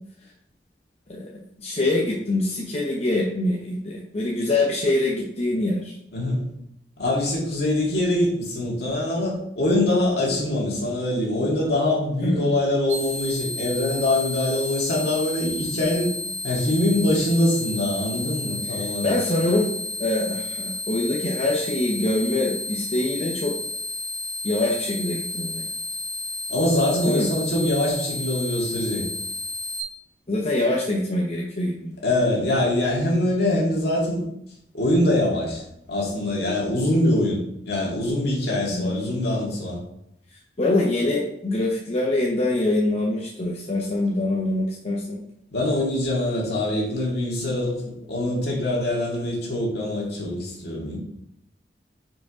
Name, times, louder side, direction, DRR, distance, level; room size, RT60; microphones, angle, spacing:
voice 1, 1.6-6.0 12.2-12.5 18.6-19.7 20.0-23.5 24.4-25.7 27.1-27.3 30.3-32.0 38.7-39.0 40.6-45.2, left 2 dB, 40° left, -3 dB, 0.8 m, -24 dB
voice 2, 6.1-6.5 7.0-16.1 16.4-19.1 26.5-29.0 32.0-34.2 34.7-35.6 35.9-37.4 37.6-39.8 45.5-47.8 48.1-51.0, left 1 dB, 65° left, -4 dB, 2.2 m, -23 dB
sound 1, 12.9-29.8, left 2 dB, 40° right, 2.0 m, -32 dB
5.1 x 4.7 x 4.8 m, 0.76 s
head